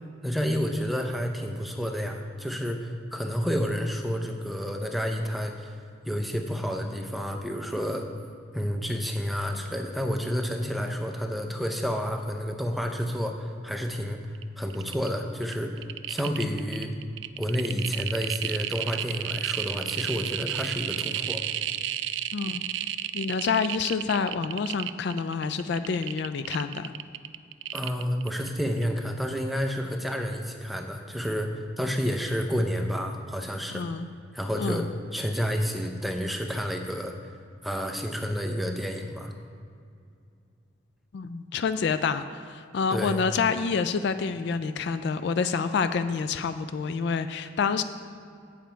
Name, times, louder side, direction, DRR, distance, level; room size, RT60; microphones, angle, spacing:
voice 1, 0.2-5.8 6.0-8.1 8.5-14.2 14.6-15.8 16.1-16.9 17.4-21.4 27.7-33.9 34.3-34.9 35.1-37.2 37.6-39.3 42.9-43.2, equal, ahead, 3 dB, 0.6 m, -30 dB
sound 1, 14.3-14.4 14.7-15.1 15.4-28.5 28.8-28.9, right 12 dB, 65° right, 0.3 m, -32 dB
voice 2, 22.3-22.6 23.1-26.9 33.7-34.1 34.6-34.9 41.1-47.8, left 5 dB, 55° left, 11 dB, 0.3 m, -28 dB
8.6 x 7.2 x 4.5 m, 2.4 s
head